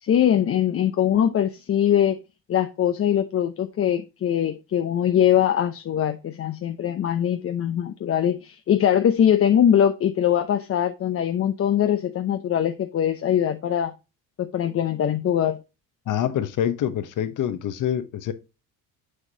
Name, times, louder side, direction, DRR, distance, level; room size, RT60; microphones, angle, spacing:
voice 1, 0.0-2.2 2.5-13.9 14.4-15.6, left 10 dB, 40° left, 0.6 m, -22 dB
voice 2, 16.1-18.3, left 10 dB, 60° left, 1.0 m, -26 dB
6.4 x 5.9 x 2.6 m
cardioid pair, 90°, 36 cm